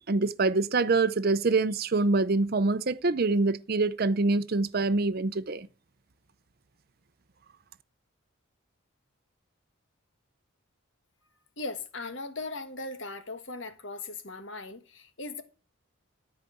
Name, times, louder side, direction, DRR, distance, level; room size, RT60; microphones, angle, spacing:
voice 1, 0.0-5.7, right 3 dB, 45° right, 0.6 m, -25 dB
voice 2, 11.6-15.4, left 3 dB, 60° left, 1.5 m, -38 dB
14.0 x 4.9 x 8.5 m
head